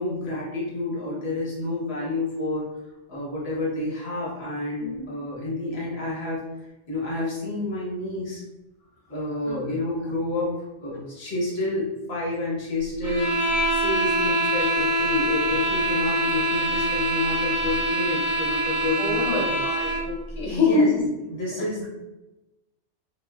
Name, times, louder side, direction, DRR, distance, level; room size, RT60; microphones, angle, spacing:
voice 1, 0.0-2.7 3.1-6.4 6.9-8.4 9.1-10.5 10.8-13.3 13.7-19.5 20.5-20.9 21.3-21.9, left 2 dB, 70° left, -5 dB, 1.1 m, -29 dB
sound 1, 13.0-20.1, right 1 dB, 30° right, 0.3 m, -24 dB
voice 2, 19.0-20.9, left 3 dB, 30° left, -7 dB, 0.8 m, -25 dB
2.9 x 2.3 x 2.2 m, 1.0 s
omnidirectional pair, 1.1 m